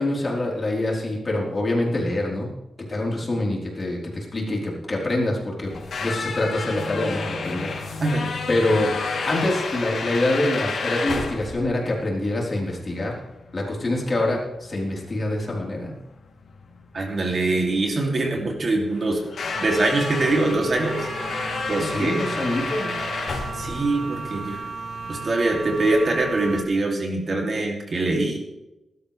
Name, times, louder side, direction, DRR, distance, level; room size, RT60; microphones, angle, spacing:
voice 1, 0.0-2.5 2.8-5.7 6.0-7.7 8.5-8.9 9.2-13.2 13.5-15.9 21.8-22.9, left 1 dB, 30° left, -2 dB, 4.0 m, -25 dB
sound 1, 5.6-24.5, left 4 dB, 70° left, 3.1 m, -31 dB
voice 2, 16.9-19.2 19.6-21.1 21.7-22.2 23.5-24.6 25.1-28.4, right 2 dB, 45° right, 1 dB, 2.8 m, -23 dB
sound 2, 19.5-26.6, right 3 dB, 65° right, 1.7 m, -34 dB
20.5 x 12.0 x 3.4 m, 0.98 s
wide cardioid pair, 145°, 0 cm